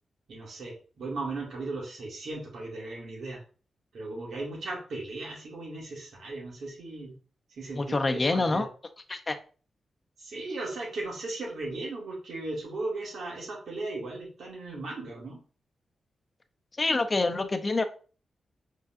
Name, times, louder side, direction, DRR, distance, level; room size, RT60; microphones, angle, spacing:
voice 1, 0.3-3.4 3.9-7.2 7.6-8.6 10.2-15.4, right 2 dB, 75° right, -3 dB, 2.1 m, -37 dB
voice 2, 7.8-8.7 9.1-9.4 16.8-17.8, left 3 dB, 35° left, 6 dB, 0.7 m, -26 dB
5.3 x 3.9 x 2.6 m, 0.38 s
cardioid pair, 65°, 0 cm